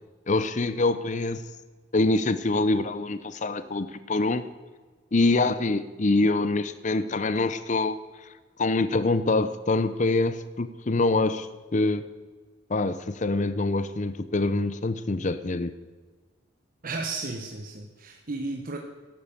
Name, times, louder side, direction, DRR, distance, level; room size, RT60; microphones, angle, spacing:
voice 1, 0.3-1.4 1.9-4.4 5.1-8.3 8.6-12.0 12.7-15.7, left 2 dB, 40° left, 0.7 m, -25 dB
voice 2, 16.8-18.8, right 3 dB, 45° right, 1.2 m, -33 dB
13.5 x 11.5 x 7.2 m
head